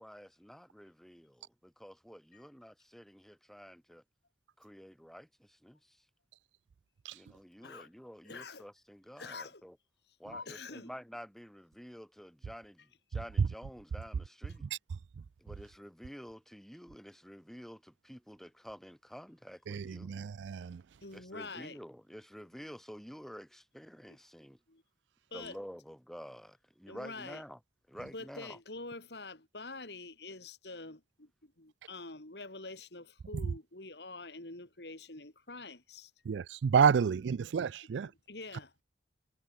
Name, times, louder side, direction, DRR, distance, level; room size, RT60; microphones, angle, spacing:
voice 1, 0.0-4.0 4.6-6.0 7.1-9.7 10.2-14.6 15.4-20.2 21.1-24.6 25.3-27.6 27.9-28.6, equal, ahead, 5.0 m, -50 dB
voice 2, 8.2-8.7 9.2-9.6 10.1-10.9 21.0-21.8 24.1-24.2 24.7-24.8 25.3-25.6 26.9-27.4 28.0-36.1 38.0-38.8, left 3 dB, 70° left, 3.4 m, -46 dB
voice 3, 19.7-20.8 36.3-38.1, right 6 dB, 85° right, 0.4 m, -29 dB
head